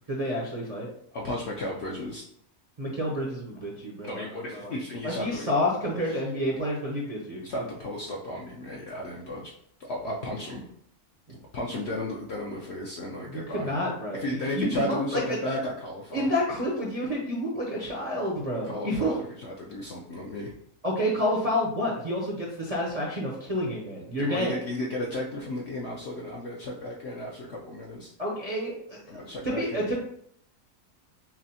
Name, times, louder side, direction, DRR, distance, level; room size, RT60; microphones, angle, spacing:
voice 1, 0.1-0.9 2.8-4.3 4.5-4.7 5.0-7.4 11.3-11.4 13.3-14.2 14.5-15.2 16.1-19.1 20.8-24.5 28.2-30.0, equal, 45° right, -5 dB, 0.5 m, -29 dB
voice 2, 1.1-2.2 4.0-5.5 6.0-6.2 7.4-9.5 9.8-10.7 11.5-13.8 14.1-16.3 18.6-20.5 24.2-28.1 29.1-29.9, left 1 dB, 65° left, -2 dB, 0.6 m, -34 dB
5.9 x 2.0 x 2.8 m, 0.67 s
omnidirectional pair, 1.6 m